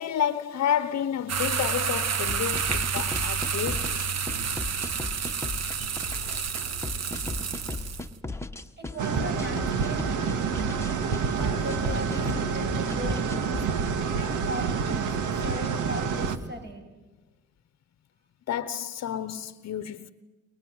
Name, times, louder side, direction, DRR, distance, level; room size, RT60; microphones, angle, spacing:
voice 1, 0.0-4.0 18.5-20.1, left 9 dB, 60° left, 1.0 m, -30 dB
sound 1, 1.3-8.1, right 6 dB, 55° right, 2.0 m, -29 dB
sound 2, 2.3-13.7, left 2 dB, 10° left, 1.6 m, -36 dB
voice 2, 8.8-10.0 11.3-13.7 14.1-16.9, right 1 dB, 35° right, 7.9 m, -38 dB
sound 3, 9.0-16.4, right 6 dB, 80° right, 2.1 m, -28 dB
29.5 x 23.5 x 8.0 m
cardioid pair, 90°, 30 cm